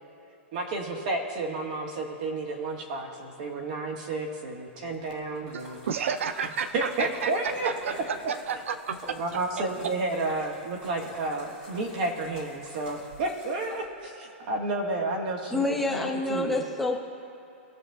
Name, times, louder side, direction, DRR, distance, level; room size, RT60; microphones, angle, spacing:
voice 1, 0.5-5.8 6.7-8.0 9.1-16.0 16.3-16.6, right 2 dB, 35° right, 0 dB, 1.5 m, -31 dB
Splash splatter, 4.9-14.1, equal, 20° right, 1.9 m, -48 dB
voice 2, 5.5-9.2, right 6 dB, 80° right, 10 dB, 0.5 m, -31 dB
voice 3, 15.5-17.0, left 2 dB, ahead, -1 dB, 0.4 m, -27 dB
20.5 x 7.0 x 2.3 m, 2.8 s
hypercardioid pair, 180°, 7 cm